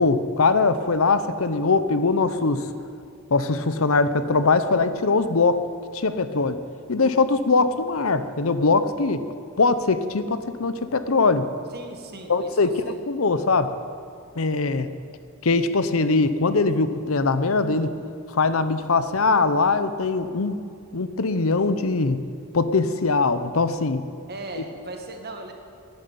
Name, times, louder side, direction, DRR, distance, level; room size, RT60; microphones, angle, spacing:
voice 1, 0.0-2.7 3.3-5.7 5.9-6.6 6.9-9.2 9.6-11.5 12.3-12.7 13.1-13.7 14.4-14.9 15.4-17.9 18.3-20.6 20.9-22.2 22.5-24.0, left 3 dB, 75° left, 12 dB, 0.8 m, -21 dB
voice 2, 11.7-13.0 14.6-14.9 24.3-25.5, right 2 dB, 50° right, 4 dB, 1.9 m, -38 dB
11.0 x 11.0 x 9.4 m, 2.5 s
head